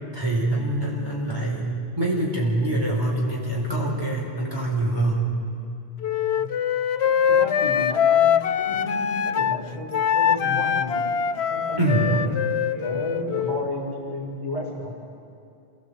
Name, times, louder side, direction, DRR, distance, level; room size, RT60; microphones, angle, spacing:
voice 1, 0.1-1.7 2.0-5.3 11.8-12.1, right 1 dB, 20° right, -4 dB, 4.6 m, -24 dB
Wind instrument woodwind instrument, 6.0-9.6 9.9-13.7, left 8 dB, 75° left, 1.0 m, -23 dB
voice 2, 7.3-11.0 11.5-12.2 12.6-14.9, left 1 dB, 25° left, -3 dB, 4.6 m, -32 dB
27.5 x 18.5 x 8.3 m, 2.5 s
omnidirectional pair, 1.1 m